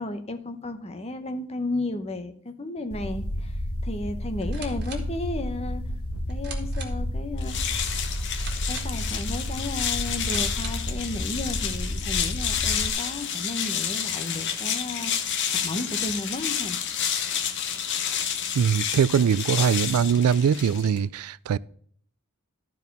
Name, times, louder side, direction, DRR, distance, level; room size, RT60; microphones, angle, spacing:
voice 1, 0.0-5.8 6.3-7.6 8.7-16.8, left 2 dB, 30° left, 0.8 m, -33 dB
sound 1, 2.9-12.9, equal, 75° left, 1.2 m, -31 dB
sound 2, 4.3-11.0, right 5 dB, 50° right, 1.7 m, -45 dB
sound 3, 7.4-21.1, left 8 dB, 55° left, 1.0 m, -29 dB
voice 2, 18.5-21.6, right 7 dB, 80° right, 0.3 m, -22 dB
12.5 x 4.6 x 5.2 m
head